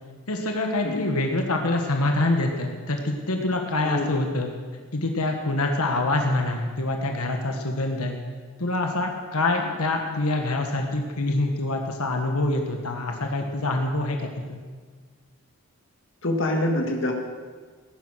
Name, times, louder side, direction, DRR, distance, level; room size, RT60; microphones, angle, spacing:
voice 1, 0.3-4.5 4.9-8.2 8.6-14.6, left 2 dB, 90° left, 3 dB, 1.5 m, -25 dB
voice 2, 3.8-4.2 16.2-17.1, left 1 dB, 55° left, 2 dB, 1.8 m, -25 dB
16.5 x 9.9 x 6.3 m, 1.5 s
head